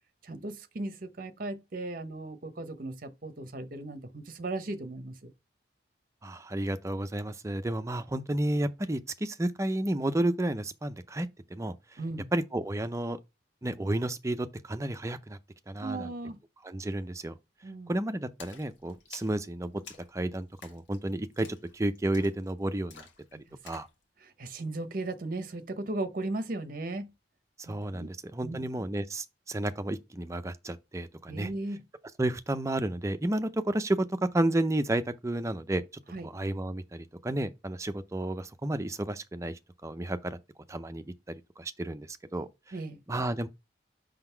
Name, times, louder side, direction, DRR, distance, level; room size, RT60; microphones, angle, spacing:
voice 1, 0.2-5.3 12.0-12.3 15.8-16.4 17.6-17.9 24.2-27.1 27.7-28.1 28.4-28.9 31.3-31.8 36.1-36.3 42.7-43.0, right 2 dB, 50° right, 0.8 m, -37 dB
voice 2, 6.2-12.0 12.3-13.2 13.6-15.4 15.7-16.1 16.6-17.4 17.9-19.7 20.1-21.5 21.7-23.1 23.6-23.9 27.6-31.5 32.2-35.8 36.2-40.4 40.7-41.1 41.6-42.7 43.1-43.5, right 1 dB, 15° right, 0.5 m, -31 dB
Splash splatter, 18.4-23.9, left 5 dB, 90° left, 1.4 m, -52 dB
5.9 x 3.9 x 4.4 m
head